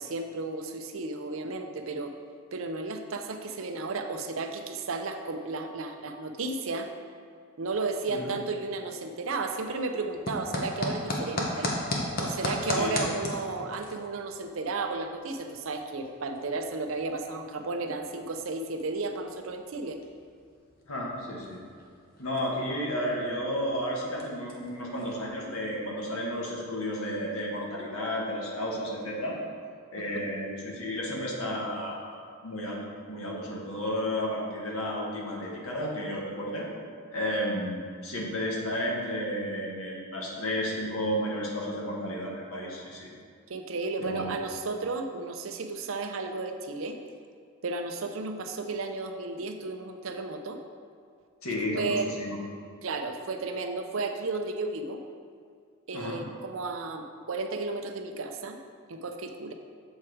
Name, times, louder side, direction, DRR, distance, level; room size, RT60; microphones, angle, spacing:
voice 1, 0.0-2.1 2.5-6.9 7.6-11.7 12.2-20.0 30.0-30.3 43.5-47.0 47.6-50.6 51.7-52.1 52.8-55.0 55.9-58.6 58.9-59.5, right 3 dB, 75° right, 5 dB, 0.6 m, -33 dB
sound 1, 9.5-25.8, left 1 dB, 45° left, 1.0 m, -38 dB
voice 2, 12.6-13.0 20.9-21.6 22.2-29.4 29.9-32.8 33.1-36.7 37.1-43.1 44.0-44.3 51.4-52.4 55.9-56.2, equal, 85° left, -3 dB, 1.6 m, -32 dB
7.3 x 4.5 x 4.9 m, 2.2 s
head